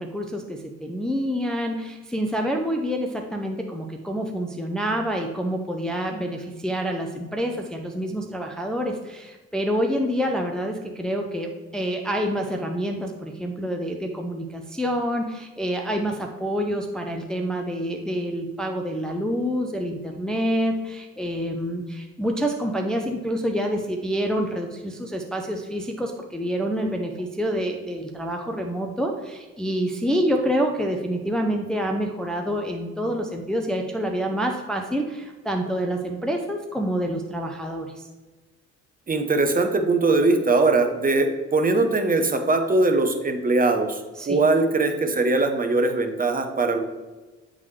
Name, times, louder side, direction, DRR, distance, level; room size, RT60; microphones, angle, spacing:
voice 1, 0.0-38.1 44.2-44.4, equal, ahead, 2 dB, 0.5 m, -27 dB
voice 2, 39.1-46.8, right 3 dB, 30° right, 5 dB, 0.8 m, -21 dB
9.2 x 3.8 x 3.2 m, 1.2 s
cardioid pair, 90°, 30 cm